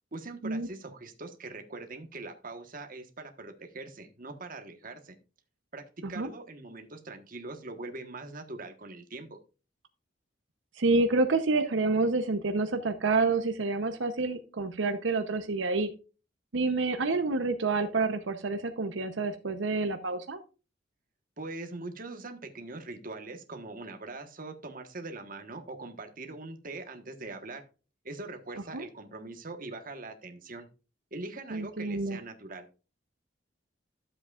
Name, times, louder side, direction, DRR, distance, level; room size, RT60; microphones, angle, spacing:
voice 1, 0.1-5.2 5.7-9.4 21.4-27.6 28.0-30.7 31.1-32.7, right 2 dB, 50° right, 5 dB, 1.3 m, -42 dB
voice 2, 10.8-15.9 16.5-20.4 28.7-28.8 31.5-32.2, right 3 dB, 85° right, 7 dB, 0.8 m, -28 dB
12.0 x 7.7 x 2.4 m, 0.33 s
head